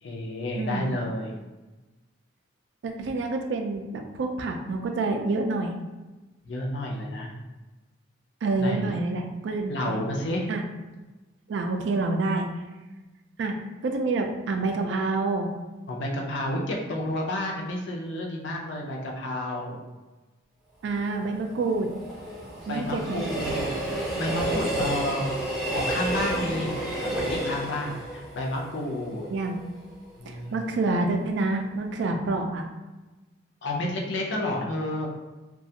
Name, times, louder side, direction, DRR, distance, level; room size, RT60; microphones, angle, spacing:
voice 1, 0.0-1.3 6.4-7.3 8.6-8.9 9.7-10.5 15.9-19.8 22.7-23.7 24.2-25.3 25.7-26.7 27.0-29.3 30.2-30.6 33.6-35.1, left 1 dB, 65° left, 0 dB, 0.5 m, -30 dB
voice 2, 0.5-0.9 2.8-5.7 8.4-10.0 10.5-10.6 11.5-12.5 13.4-13.6 13.8-15.5 20.8-21.9 22.7-23.2 29.3-29.6 30.3-32.7, right 3 dB, 65° right, 4 dB, 0.3 m, -27 dB
Train, 20.9-29.9 30.3-30.4, right 1 dB, ahead, 0.5 m, -31 dB
2.4 x 2.3 x 2.7 m, 1.2 s
head